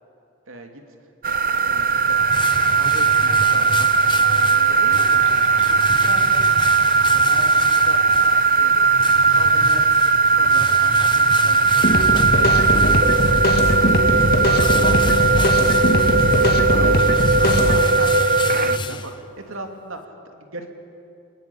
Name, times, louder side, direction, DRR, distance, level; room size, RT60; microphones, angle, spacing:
voice 1, 0.5-0.8 1.6-2.2 2.6-5.2 5.6-6.6 7.0-8.0 8.6-8.7 9.1-10.0 10.3-14.0 14.3-14.9 15.2-18.1 18.6-20.7, right 2 dB, 80° right, 4 dB, 2.9 m, -37 dB
sound 1, 1.2-18.8, right 4 dB, 40° right, 0.6 m, -17 dB
sound 2, 1.7-19.6, left 3 dB, 20° left, 0.7 m, -33 dB
sound 3, 11.8-17.8, left 1 dB, 45° left, 1.9 m, -20 dB
29.0 x 20.5 x 8.7 m, 2.6 s
head